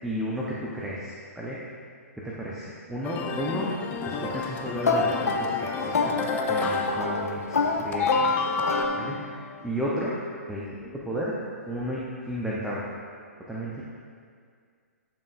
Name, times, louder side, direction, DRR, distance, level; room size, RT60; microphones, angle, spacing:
voice 1, 0.0-1.6 2.2-3.8 4.1-8.4 8.9-10.2 10.5-11.3 11.7-12.8 13.5-13.8, equal, 5° right, -7 dB, 0.8 m, -33 dB
sound 1, 3.0-7.7 7.9-8.9, left 5 dB, 20° left, 0.5 m, -30 dB
sound 2, 4.8-9.5, left 3 dB, 75° left, 0.8 m, -27 dB
10.5 x 6.0 x 2.6 m, 2.1 s
figure-of-eight pair, 125°, 8 cm